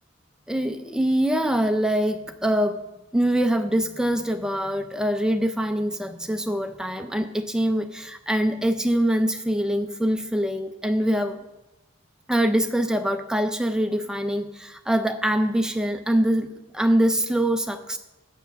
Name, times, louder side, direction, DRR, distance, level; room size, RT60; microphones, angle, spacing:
voice 1, 0.5-2.8 3.1-11.4 12.3-18.0, right 1 dB, 5° right, 7 dB, 0.4 m, -24 dB
7.0 x 6.2 x 6.9 m, 0.98 s
head